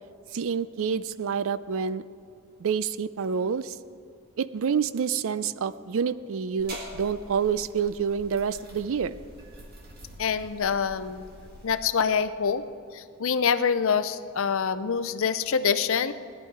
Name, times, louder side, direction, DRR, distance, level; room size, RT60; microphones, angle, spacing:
voice 1, 0.3-2.0 2.6-3.8 4.4-9.2, right 6 dB, 60° right, 15 dB, 0.4 m, -28 dB
sound 1, 6.6-11.8, right 1 dB, 45° right, 1.9 m, -45 dB
voice 2, 10.2-11.2 11.6-12.6 12.9-16.1, left 6 dB, 60° left, 13 dB, 0.5 m, -25 dB
18.0 x 10.5 x 4.6 m, 2.5 s
head